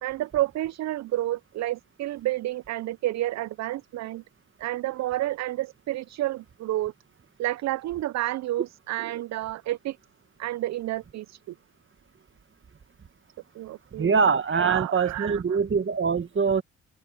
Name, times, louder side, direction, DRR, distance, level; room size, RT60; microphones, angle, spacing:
voice 1, 0.0-4.2 4.6-6.9 7.4-10.0 10.4-11.6 13.5-14.2 14.5-15.6, right 15 dB, 60° right, 0.4 m, -30 dB
voice 2, 13.9-16.6, right 5 dB, 40° right, 1.6 m, -23 dB
open air
supercardioid pair, 60°, 31 cm